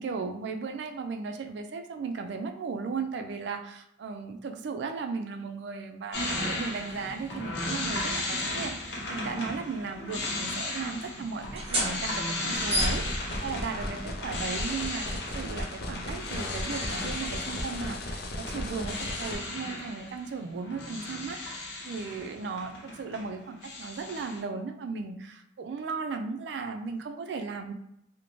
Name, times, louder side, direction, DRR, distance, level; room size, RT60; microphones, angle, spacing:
voice 1, 0.0-27.7, right 4 dB, 75° right, 5 dB, 0.3 m, -36 dB
sound 1, 6.1-23.3 23.6-24.4, left 2 dB, 90° left, 0.7 m, -36 dB
sound 2, 11.4-18.7, right 1 dB, 35° right, 0.7 m, -35 dB
sound 3, 12.6-19.3, left 1 dB, 60° left, 0.4 m, -37 dB
2.5 x 2.1 x 3.0 m, 0.75 s
head